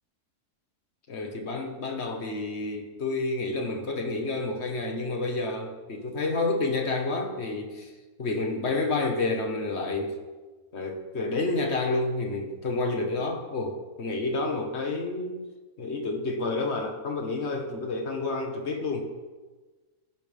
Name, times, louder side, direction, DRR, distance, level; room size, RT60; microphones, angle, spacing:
voice 1, 1.1-7.9 8.2-10.2 10.7-15.5 15.8-19.1, left 3 dB, 45° left, 3 dB, 1.7 m, -29 dB
15.0 x 11.0 x 3.5 m, 1.3 s
omnidirectional pair, 1.7 m